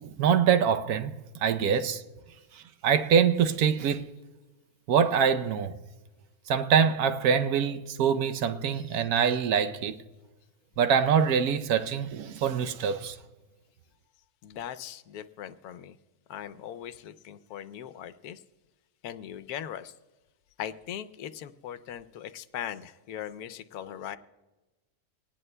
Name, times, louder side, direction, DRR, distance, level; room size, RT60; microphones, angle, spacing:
voice 1, 0.0-2.0 2.5-4.1 4.9-5.7 6.5-10.0 10.8-13.2, right 7 dB, 80° right, 1.2 m, -24 dB
voice 2, 14.4-16.0 16.3-18.4 19.0-19.9 20.6-24.2, left 10 dB, 85° left, 1.1 m, -39 dB
23.5 x 18.5 x 2.2 m
omnidirectional pair, 1.6 m